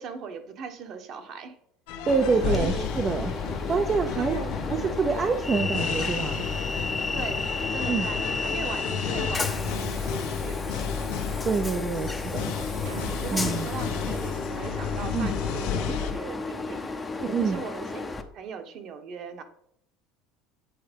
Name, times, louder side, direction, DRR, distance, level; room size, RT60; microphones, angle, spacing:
voice 1, 0.0-1.5 2.4-2.9 4.1-4.7 7.1-10.9 13.2-16.9 17.4-18.0 18.3-19.4, right 5 dB, 45° right, 7 dB, 1.2 m, -39 dB
sound 1, 1.9-16.1, left 7 dB, 75° left, 1.2 m, -32 dB
Train, 2.1-18.2, left 3 dB, 15° left, 0.7 m, -33 dB
voice 2, 2.1-3.3 3.7-4.4 4.7-6.4 7.9-8.1 11.4-12.5 13.3-13.7 15.1-15.3 17.2-17.6, right 5 dB, 25° right, 5 dB, 0.6 m, -26 dB
sound 2, 12.8-15.3, right 9 dB, 80° right, 1.1 m, -44 dB
8.7 x 4.7 x 5.2 m, 0.70 s
cardioid pair, 150°, 0 cm